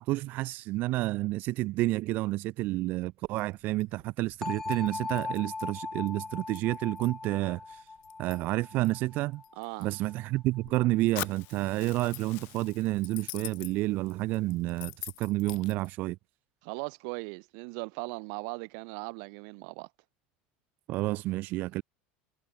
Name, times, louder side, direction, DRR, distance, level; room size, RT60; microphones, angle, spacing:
voice 1, 0.0-7.9 8.2-9.4 9.8-16.2 20.9-21.8, right 19 dB, 45° right, 1.0 m, -30 dB
sound 1, 3.2-15.9, left 22 dB, 85° left, 6.2 m, -48 dB
sound 2, 4.4-10.3, left 3 dB, 10° left, 1.1 m, -39 dB
voice 2, 9.6-9.9 16.6-19.9, right 40 dB or more, 65° right, 1.4 m, -38 dB
Fire, 11.2-15.2, left 25 dB, 55° left, 2.0 m, -44 dB
cardioid pair, 160°, 4 cm